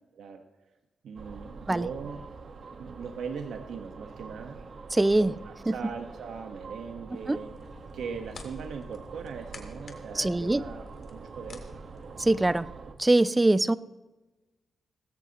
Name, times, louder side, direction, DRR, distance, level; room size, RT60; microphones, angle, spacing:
voice 1, 1.0-2.2 2.7-4.6 5.2-7.5 7.9-11.7, right 6 dB, 85° right, 4 dB, 1.2 m, -40 dB
sound 1, 1.2-13.0, right 4 dB, 55° right, 1.3 m, -45 dB
voice 2, 4.9-5.3 5.7-5.8 7.3-7.4 10.2-10.6 12.2-12.7 13.0-13.7, right 2 dB, 15° right, 15 dB, 0.4 m, -23 dB
sound 2, 7.1-12.6, left 3 dB, 50° left, 2.3 m, -50 dB
19.0 x 16.0 x 3.0 m, 1.1 s
wide cardioid pair, 135°, 0 cm